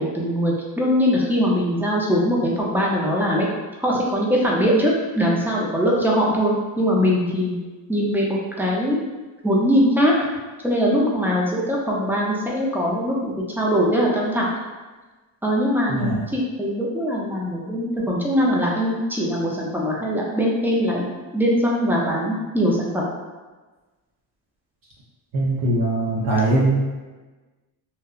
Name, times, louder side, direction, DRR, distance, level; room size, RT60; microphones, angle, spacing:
voice 1, 0.0-3.5 3.8-7.6 7.9-9.0 9.4-10.1 10.6-14.5 15.4-21.1 21.3-23.0, equal, 5° right, -4 dB, 0.4 m, -21 dB
voice 2, 15.9-16.2 25.3-26.8, right 2 dB, 45° right, -6 dB, 0.7 m, -21 dB
2.7 x 2.1 x 2.3 m, 1.2 s
cardioid pair, 85°, 46 cm